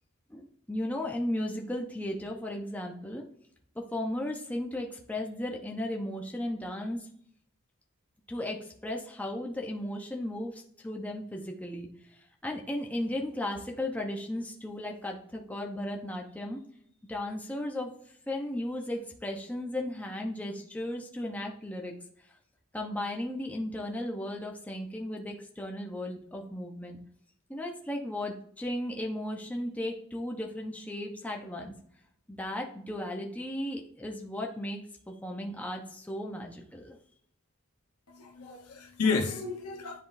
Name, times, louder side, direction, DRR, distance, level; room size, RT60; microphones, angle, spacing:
voice 1, 0.3-3.2 3.7-7.1 8.3-16.6 17.1-17.9 18.3-21.9 22.7-27.0 27.5-31.8 32.3-37.0, left 1 dB, 5° left, 0 dB, 0.7 m, -35 dB
voice 2, 38.1-40.0, left 4 dB, 85° left, 4 dB, 1.0 m, -31 dB
10.5 x 3.6 x 2.6 m, 0.64 s
head